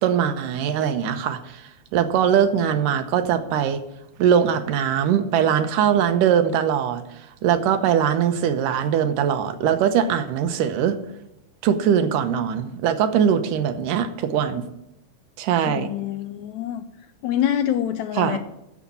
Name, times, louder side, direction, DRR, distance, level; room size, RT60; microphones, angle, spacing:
voice 1, 0.0-3.8 4.2-7.0 7.4-11.0 11.6-14.7 15.4-15.9 18.1-18.4, right 8 dB, 80° right, 9 dB, 2.5 m, -21 dB
voice 2, 15.7-16.8 17.2-18.4, left 10 dB, 85° left, 10 dB, 1.6 m, -25 dB
10.0 x 7.3 x 8.4 m, 0.86 s
omnidirectional pair, 3.8 m